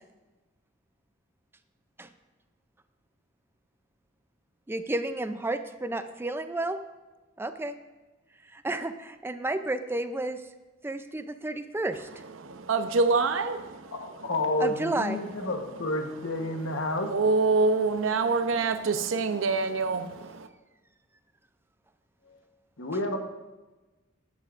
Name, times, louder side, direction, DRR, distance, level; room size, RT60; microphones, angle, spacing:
voice 1, 4.7-6.8 7.4-7.7 8.6-10.4 10.8-12.1 14.6-15.2, right 2 dB, 10° right, 9 dB, 0.4 m, -31 dB
voice 2, 12.0-14.3 15.4-15.8 16.2-20.5, right 4 dB, 85° right, 8 dB, 0.7 m, -27 dB
voice 3, 13.9-17.1 22.3-22.4 22.8-23.2, left 2 dB, 70° left, 4 dB, 1.2 m, -30 dB
13.5 x 10.0 x 2.5 m, 1.2 s
head